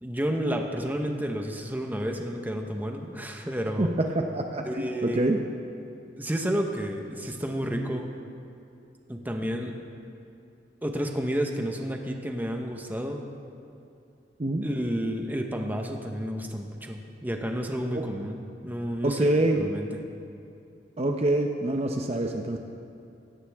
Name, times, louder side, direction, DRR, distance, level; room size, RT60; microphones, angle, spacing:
voice 1, 0.0-3.9 4.7-5.2 6.2-8.1 9.1-9.8 10.8-13.3 14.6-18.4 18.6-20.0, equal, 10° right, 3 dB, 1.1 m, -31 dB
voice 2, 3.8-5.4 14.4-14.7 17.9-18.0 19.0-19.6 21.0-22.6, right 1 dB, 35° right, 3 dB, 0.7 m, -26 dB
17.0 x 15.5 x 3.6 m, 2.6 s
head